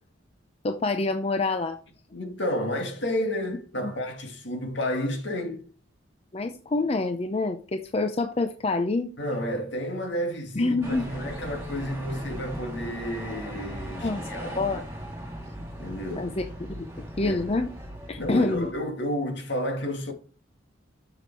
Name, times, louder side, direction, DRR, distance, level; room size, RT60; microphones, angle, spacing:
voice 1, 0.6-1.8 3.8-3.9 6.3-9.1 10.6-11.1 14.0-14.8 16.2-16.4 16.8-16.9 17.2-17.7 18.1-18.7, left 3 dB, 30° left, 0.5 m, -26 dB
voice 2, 2.1-5.6 9.2-14.6 15.8-16.3 17.2-17.4 18.2-20.1, equal, 65° left, 2.2 m, -31 dB
sound 1, 10.8-18.7, equal, 15° right, 3.1 m, -38 dB
7.2 x 6.9 x 4.7 m
head